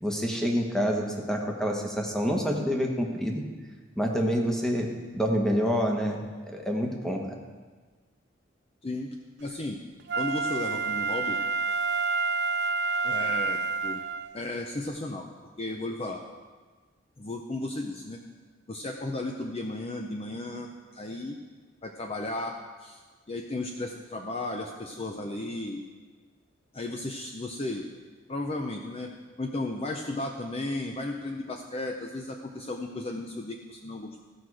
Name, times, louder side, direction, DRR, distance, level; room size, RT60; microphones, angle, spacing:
voice 1, 0.0-3.4 4.0-4.9 5.1-7.2, equal, 5° left, 0 dB, 1.1 m, -27 dB
voice 2, 8.8-9.8 10.2-11.4 13.0-14.0 14.3-15.3 15.6-16.2 17.2-18.2 18.7-21.4 21.8-23.0 23.3-25.8 26.7-27.9 28.3-29.1 29.4-34.2, left 2 dB, 30° left, 2 dB, 0.6 m, -34 dB
Wind instrument woodwind instrument, 10.1-14.4 14.9-15.0, right 4 dB, 55° right, 0.5 m, -28 dB
15.5 x 6.0 x 4.8 m, 1.4 s
head